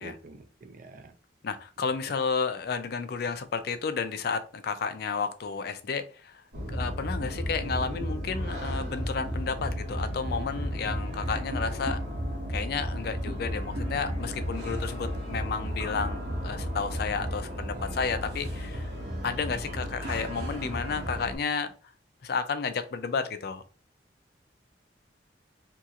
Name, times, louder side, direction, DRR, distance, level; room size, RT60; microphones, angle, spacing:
voice 1, 0.0-1.1, right 2 dB, 50° right, 0.4 m, -47 dB
voice 2, 1.4-6.4 6.7-12.0 12.5-18.9 19.2-21.7 22.2-23.6, left 5 dB, 60° left, 0.4 m, -32 dB
sound 1, 6.5-21.4, equal, 70° right, 1.0 m, -33 dB
2.9 x 2.8 x 2.4 m
head